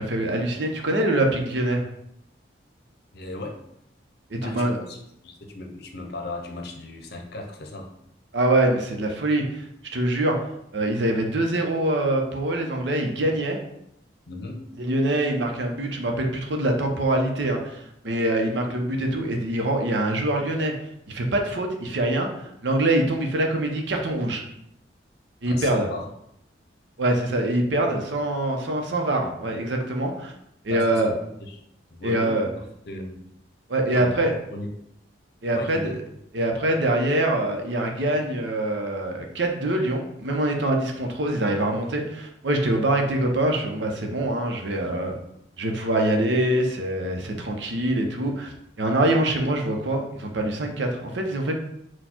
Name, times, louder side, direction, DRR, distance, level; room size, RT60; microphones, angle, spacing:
voice 1, 0.0-1.8 4.3-4.8 8.3-9.6 9.9-10.4 10.7-13.6 14.8-20.7 21.1-24.4 25.4-25.9 27.0-30.3 30.6-31.1 32.0-32.5 33.7-34.3 35.4-36.0 36.3-45.2 45.6-51.6, right 1 dB, 75° right, 2 dB, 0.7 m, -24 dB
voice 2, 3.1-3.6 4.4-7.9 14.3-14.6 25.5-26.1 30.7-31.6 31.9-33.2 33.9-34.1 34.5-34.7 35.5-35.9, left 2 dB, 65° left, 4 dB, 0.7 m, -36 dB
4.2 x 2.3 x 4.4 m, 0.78 s
head